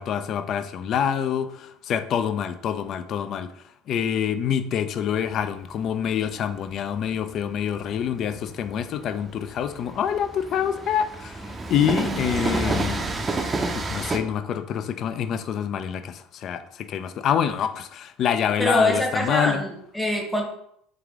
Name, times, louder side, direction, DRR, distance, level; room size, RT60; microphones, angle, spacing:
voice 1, 0.0-3.5 3.9-13.3 13.7-19.6, left 8 dB, 50° left, 11 dB, 0.4 m, -26 dB
Train, 5.1-14.2, right 3 dB, 25° right, 0.5 m, -30 dB
voice 2, 18.6-20.4, left 1 dB, 5° left, 1 dB, 0.9 m, -24 dB
3.4 x 3.3 x 3.6 m, 0.72 s
supercardioid pair, 85°, 0 cm